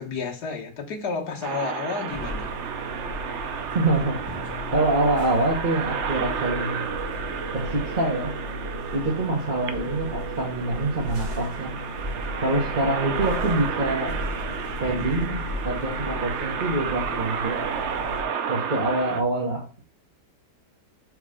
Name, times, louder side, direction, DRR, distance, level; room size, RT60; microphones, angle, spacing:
voice 1, 0.0-2.5, left 4 dB, 75° left, 1 dB, 1.7 m, -31 dB
sound 1, 1.4-19.2, right 7 dB, 60° right, 0.8 m, -32 dB
sound 2, 2.1-18.2, left 1 dB, 75° right, 2.6 m, -35 dB
voice 2, 3.7-4.2 4.7-6.8 7.5-8.3 8.9-11.7 12.4-14.2 14.8-17.6 18.5-19.8, right 2 dB, 30° right, -3 dB, 1.2 m, -25 dB
6.4 x 3.2 x 5.0 m, 0.37 s
omnidirectional pair, 1.7 m